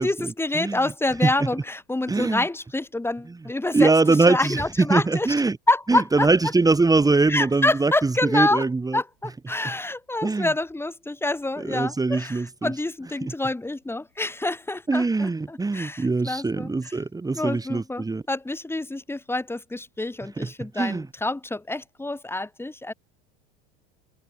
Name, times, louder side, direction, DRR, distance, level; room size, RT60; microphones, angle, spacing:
voice 1, 0.0-5.3 5.7-6.3 7.3-8.6 8.9-16.9 17.3-22.9, left 2 dB, 5° left, 4.8 m, -27 dB
voice 2, 2.1-2.4 3.7-5.6 5.9-9.0 10.2-10.5 11.6-12.7 13.2-13.3 14.9-18.2 20.4-20.5 20.8-21.1, right 3 dB, 10° right, 3.9 m, -22 dB
supercardioid pair, 125°, 31 cm